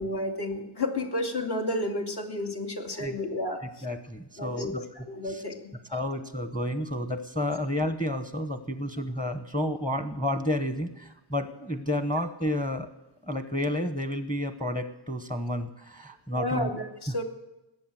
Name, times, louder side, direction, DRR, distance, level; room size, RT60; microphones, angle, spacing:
voice 1, 0.0-3.9 4.4-6.0 16.3-17.2, left 1 dB, 55° left, 3 dB, 2.7 m, -32 dB
voice 2, 3.8-4.9 5.3-5.4 5.9-12.9 13.2-16.7, left 1 dB, 10° left, 9 dB, 1.1 m, -31 dB
20.5 x 8.5 x 7.7 m, 0.94 s
wide cardioid pair, 115°, 48 cm